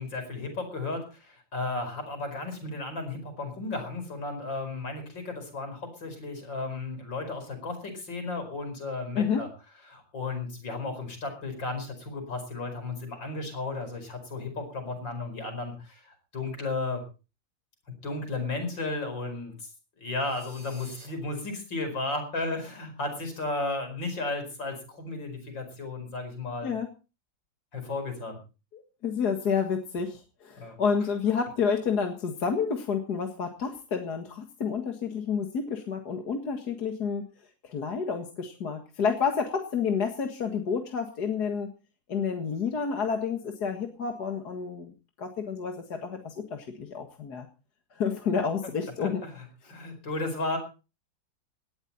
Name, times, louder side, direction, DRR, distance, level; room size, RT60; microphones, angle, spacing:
voice 1, 0.0-9.5 9.9-17.0 17.9-19.7 20.0-26.7 27.7-28.4 30.6-30.8 49.0-50.6, left 3 dB, 75° left, 6 dB, 5.6 m, -34 dB
sound 1, 20.2-21.1, right 1 dB, 25° right, 7.5 m, -51 dB
voice 2, 28.7-37.2 37.6-41.7 42.1-44.9 45.2-47.5 47.9-49.2, left 6 dB, 55° left, 4 dB, 2.3 m, -29 dB
18.5 x 13.0 x 4.2 m, 0.34 s
omnidirectional pair, 2.0 m